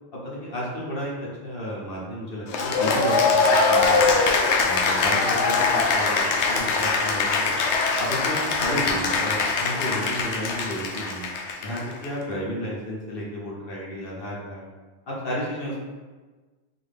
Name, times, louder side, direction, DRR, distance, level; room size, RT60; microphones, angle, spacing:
voice 1, 0.1-1.1 1.4-4.1 4.6-7.5 8.0-11.2 11.6-14.6 15.1-15.8, equal, 55° left, -5 dB, 1.3 m, -32 dB
Cheering / Applause, 2.5-12.1, left 4 dB, 75° left, 0.9 m, -22 dB
4.2 x 3.0 x 3.4 m, 1.3 s
omnidirectional pair, 1.2 m